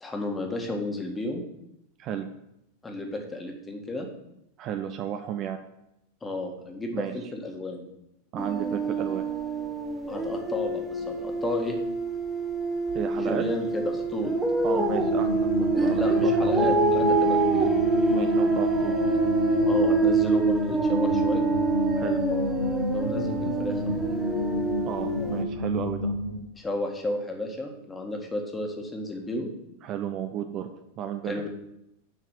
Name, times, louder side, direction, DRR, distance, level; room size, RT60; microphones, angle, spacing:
voice 1, 0.0-1.4 2.8-4.1 6.2-7.9 10.1-11.8 13.1-14.3 15.9-17.7 19.6-21.5 22.9-24.0 26.6-29.5 31.3-31.5, left 1 dB, 15° left, 2 dB, 1.7 m, -32 dB
voice 2, 4.6-5.6 6.9-7.3 8.3-9.2 12.9-13.4 14.6-16.8 18.1-19.0 22.0-22.2 24.8-26.1 29.8-30.7 31.0-31.5, right 9 dB, 35° right, 7 dB, 0.7 m, -33 dB
sound 1, 8.4-25.4, right 3 dB, 10° right, 1.2 m, -25 dB
sound 2, 14.7-26.4, left 2 dB, 90° left, 1.1 m, -32 dB
7.3 x 5.8 x 7.4 m, 0.82 s
figure-of-eight pair, 90°, 0 cm